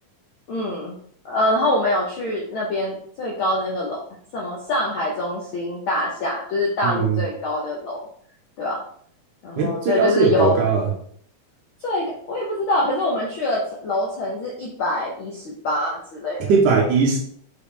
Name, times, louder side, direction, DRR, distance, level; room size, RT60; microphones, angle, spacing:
voice 1, 0.5-1.0 1.2-4.0 4.3-8.0 8.6-8.8 9.4-10.6 11.8-16.4, left 1 dB, 70° left, -3 dB, 1.3 m, -24 dB
voice 2, 6.8-7.2 9.6-10.9 16.5-17.2, right 5 dB, 80° right, 0 dB, 2.5 m, -19 dB
6.2 x 5.1 x 3.3 m, 0.62 s
omnidirectional pair, 3.5 m